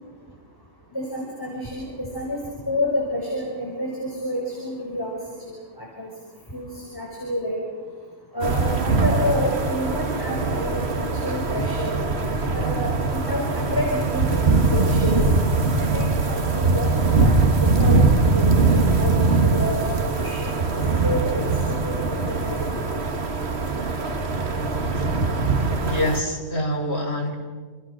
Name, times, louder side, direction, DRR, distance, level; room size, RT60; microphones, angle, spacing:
voice 1, 0.9-2.4 2.7-5.1 5.4-6.1 6.5-7.6 8.3-11.9 12.5-15.2 15.8-17.3 17.6-18.0 18.3-20.5 21.0-22.6, left 1 dB, 15° left, -2 dB, 5.6 m, -29 dB
sound 1, 8.4-26.2, right 3 dB, 55° right, 1.9 m, -22 dB
voice 2, 25.8-27.3, left 1 dB, 55° left, 1 dB, 4.7 m, -25 dB
28.0 x 28.0 x 6.3 m, 1.4 s
omnidirectional pair, 1.3 m